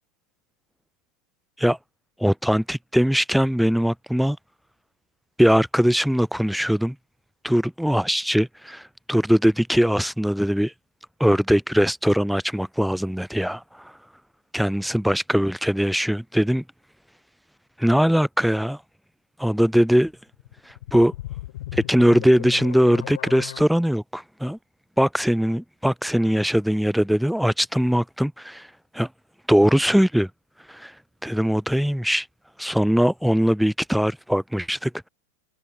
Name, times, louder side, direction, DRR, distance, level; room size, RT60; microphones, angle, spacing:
voice 1, 2.2-4.4 5.4-7.0 7.4-10.7 11.2-13.9 14.5-16.6 17.8-18.8 19.4-20.1 20.7-21.1 21.7-24.6 25.0-28.7 28.9-29.1 29.5-30.3 30.7-30.9 31.2-32.3 32.6-34.9, equal, ahead, 0.3 m, -21 dB
sound 1, 20.3-23.6, left 15 dB, 55° left, 6.0 m, -36 dB
figure-of-eight pair, 90°, 0 cm